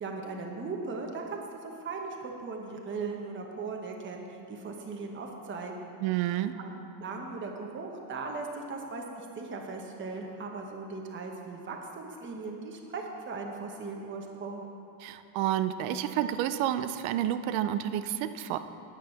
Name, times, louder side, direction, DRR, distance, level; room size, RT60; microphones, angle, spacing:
voice 1, 0.0-5.9 6.6-6.7 7.0-14.6, right 4 dB, 25° right, 1 dB, 1.0 m, -38 dB
voice 2, 6.0-6.5 15.0-18.6, right 11 dB, 70° right, 11 dB, 0.7 m, -30 dB
9.7 x 8.3 x 5.8 m, 2.7 s
cardioid pair, 160°, 49 cm